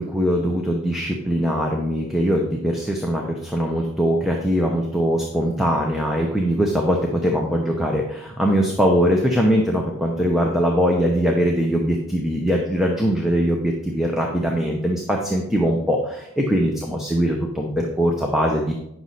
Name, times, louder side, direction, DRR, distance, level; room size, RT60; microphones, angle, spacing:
voice 1, 0.0-18.7, equal, ahead, 0 dB, 0.7 m, -21 dB
9.4 x 6.2 x 4.1 m, 0.82 s
head